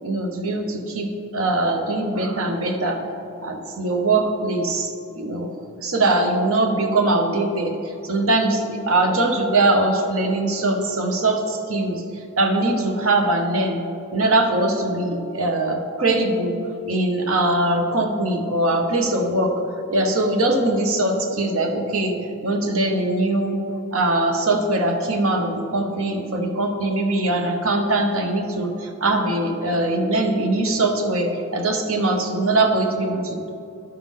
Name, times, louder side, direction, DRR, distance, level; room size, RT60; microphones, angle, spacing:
voice 1, 0.0-3.0 3.4-5.5 5.8-7.7 8.0-12.0 12.4-13.8 14.1-16.6 16.9-19.6 19.9-22.1 22.4-23.6 23.9-33.5, right 2 dB, 70° right, 4 dB, 1.0 m, -21 dB
12.0 x 5.7 x 3.7 m, 2.8 s
head